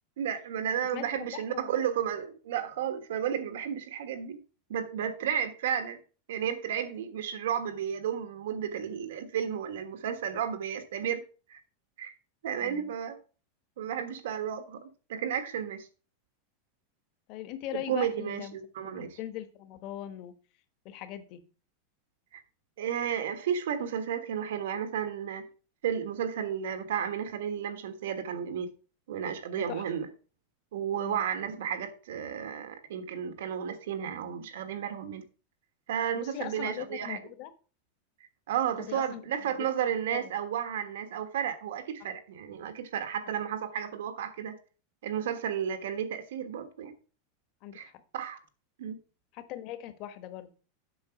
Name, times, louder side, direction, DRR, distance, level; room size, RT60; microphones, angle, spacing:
voice 1, 0.2-4.4 4.7-6.0 6.3-11.2 11.5-11.6 12.0-12.1 12.4-13.2 13.8-15.9 17.9-19.2 22.3-22.4 22.8-25.5 25.8-28.7 29.1-30.1 30.7-35.2 35.9-37.2 38.5-44.5 45.0-46.9 47.7-48.4 48.8-49.0, right 8 dB, 85° right, 1.4 m, -33 dB
voice 2, 0.9-1.8 12.6-12.9 17.3-18.5 18.9-20.3 20.8-21.4 29.6-29.8 30.9-31.2 36.1-37.5 38.8-39.7 40.1-40.3 42.0-42.1 47.6-47.9 49.3-50.5, left 12 dB, 40° left, 1.1 m, -41 dB
7.8 x 6.0 x 5.8 m
supercardioid pair, 170°, 0 cm